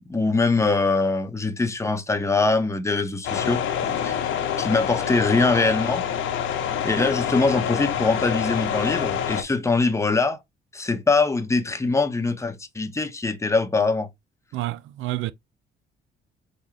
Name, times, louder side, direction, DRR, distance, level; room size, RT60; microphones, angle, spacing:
voice 1, 0.0-4.3 4.6-6.0 6.8-10.4 10.7-14.1, left 3 dB, 15° left, 0.9 m, -23 dB
sound 1, 3.2-9.4, left 9 dB, 80° left, 0.9 m, -26 dB
voice 2, 14.5-15.3, right 18 dB, 85° right, 0.4 m, -29 dB
3.9 x 3.6 x 3.1 m
cardioid pair, 90°, 20 cm